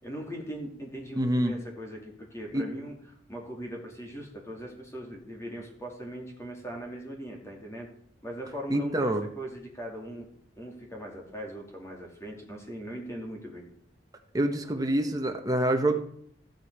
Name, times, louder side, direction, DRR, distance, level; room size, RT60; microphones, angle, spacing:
voice 1, 0.0-3.0 3.3-7.9 8.2-10.3 10.6-13.7, equal, 15° left, 0 dB, 2.7 m, -40 dB
voice 2, 1.2-1.5 2.5-2.6 8.7-9.2 14.3-16.0, right 1 dB, 20° right, 4 dB, 1.0 m, -26 dB
13.5 x 9.3 x 4.7 m, 0.66 s
head